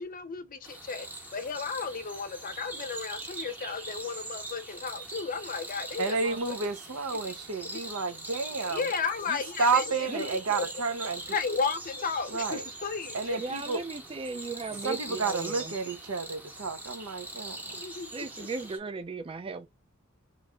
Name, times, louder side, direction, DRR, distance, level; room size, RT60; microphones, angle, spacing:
voice 1, 0.0-6.6 7.2-7.3 8.6-10.6 11.3-13.4 17.7-18.5, left 5 dB, 40° left, 0.5 m, -34 dB
sound 1, 0.6-18.8, right 1 dB, 10° right, 0.9 m, -42 dB
voice 2, 6.0-8.8 9.3-11.2 12.3-12.6 13.1-13.8 14.8-17.8, right 4 dB, 80° right, 0.7 m, -31 dB
voice 3, 13.4-15.7 18.1-19.7, right 4 dB, 25° right, 0.4 m, -36 dB
3.1 x 2.5 x 4.1 m
head